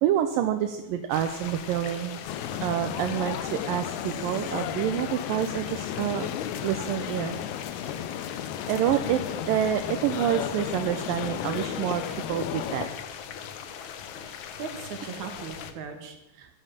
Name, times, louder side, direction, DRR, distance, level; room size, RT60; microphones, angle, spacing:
voice 1, 0.0-2.2 2.6-6.3 6.6-7.4 8.7-9.2 9.5-12.9, right 11 dB, 75° right, 7 dB, 2.3 m, -27 dB
sound 1, 1.1-15.7, left 8 dB, 65° left, 2.1 m, -40 dB
sound 2, 2.3-12.9, left 10 dB, 90° left, 2.8 m, -34 dB
voice 2, 14.2-16.5, right 6 dB, 55° right, 5 dB, 3.0 m, -39 dB
13.0 x 12.5 x 7.5 m, 0.93 s
omnidirectional pair, 4.5 m